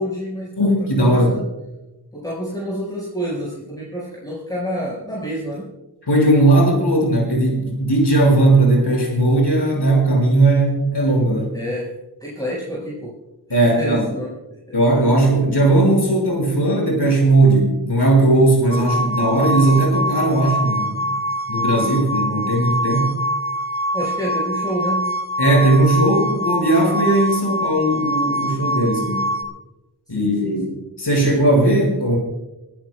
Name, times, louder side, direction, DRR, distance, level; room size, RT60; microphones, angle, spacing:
voice 1, 0.0-0.7 1.0-1.4 2.1-5.7 11.5-11.9 12.2-13.1 13.6-14.4 14.7-14.8 23.9-25.1 30.1-30.6, equal, 10° left, -5 dB, 4.9 m, -28 dB
voice 2, 0.6-1.4 6.1-11.5 13.5-14.1 14.7-21.1 21.5-23.1 25.4-29.3 30.1-32.2, right 2 dB, 90° left, 0 dB, 5.4 m, -17 dB
sound 1, 18.7-29.4, equal, 30° right, 2.4 m, -24 dB
29.5 x 15.0 x 2.3 m, 0.98 s
wide cardioid pair, 45°, 40 cm